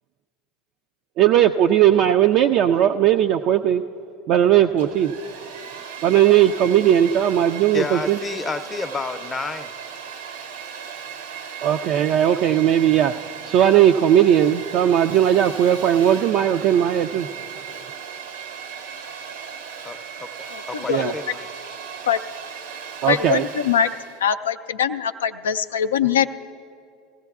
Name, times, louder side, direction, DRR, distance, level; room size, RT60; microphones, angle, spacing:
voice 1, 1.2-3.8 4.3-5.1 6.0-8.2 11.6-13.1 13.4-17.3 20.9-21.1 23.0-23.4, right 10 dB, 55° right, 5 dB, 0.3 m, -17 dB
Domestic sounds home sounds, 4.7-24.2, right 7 dB, 75° right, 0.7 m, -37 dB
voice 2, 7.7-9.7 19.8-21.5, left 3 dB, 20° left, 9 dB, 0.6 m, -30 dB
voice 3, 23.1-23.9 24.2-26.3, left 8 dB, 80° left, 10 dB, 0.3 m, -22 dB
21.0 x 15.5 x 2.4 m, 2.5 s
hypercardioid pair, 80°, 0 cm